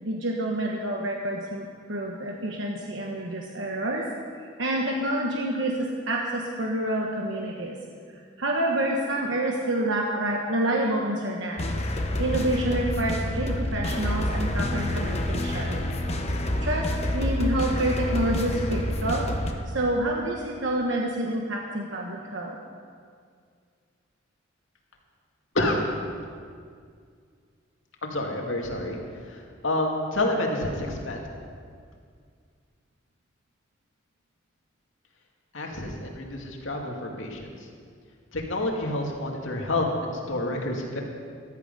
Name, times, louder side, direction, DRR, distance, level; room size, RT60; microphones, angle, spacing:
voice 1, 0.0-4.1 4.6-7.8 8.4-11.6 12.2-15.8 16.6-19.3 19.6-22.6, right 1 dB, 70° right, 0 dB, 1.2 m, -28 dB
sound 1, 11.6-19.5, left 1 dB, 30° left, 1.1 m, -28 dB
voice 2, 28.0-29.0 29.3-31.2 35.5-37.5 38.3-41.0, left 1 dB, 75° left, 0 dB, 2.3 m, -28 dB
14.5 x 13.0 x 5.4 m, 2.1 s
head